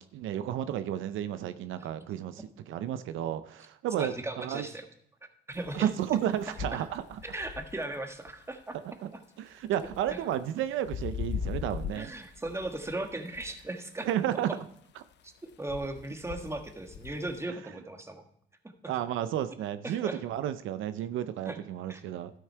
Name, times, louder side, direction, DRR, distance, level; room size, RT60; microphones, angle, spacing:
voice 1, 0.0-4.7 5.7-7.2 9.0-9.1 9.4-12.1 14.1-14.5 17.5-17.6 18.9-22.3, right 11 dB, 80° right, 12 dB, 0.6 m, -32 dB
voice 2, 4.0-4.8 5.5-5.9 6.7-6.8 7.2-8.8 9.1-9.2 10.1-10.2 11.9-14.1 15.6-18.2 19.8-20.2 21.4-21.6 21.9-22.0, right 2 dB, 15° right, 6 dB, 1.4 m, -37 dB
sound 1, 5.5-5.8 6.3-8.3 9.7-10.4 10.9-12.0 12.4-13.7 15.7-17.4, left 7 dB, 65° left, 0.7 m, -39 dB
12.5 x 6.3 x 4.5 m, 0.70 s
cardioid pair, 90°, 20 cm